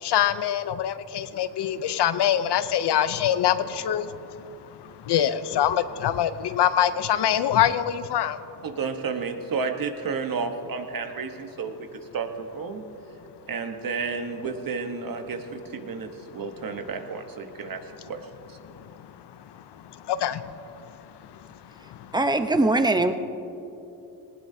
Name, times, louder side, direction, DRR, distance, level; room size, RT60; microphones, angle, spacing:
voice 1, 0.0-8.4 18.6-22.1, left 10 dB, 70° left, 12 dB, 0.7 m, -25 dB
voice 2, 8.6-11.8 12.1-12.8 13.5-18.2 18.5-18.6, right 5 dB, 50° right, 6 dB, 1.2 m, -31 dB
voice 3, 22.1-23.1, right 2 dB, 10° right, 8 dB, 0.8 m, -21 dB
19.0 x 17.0 x 2.8 m, 2.9 s
cardioid pair, 85°, 43 cm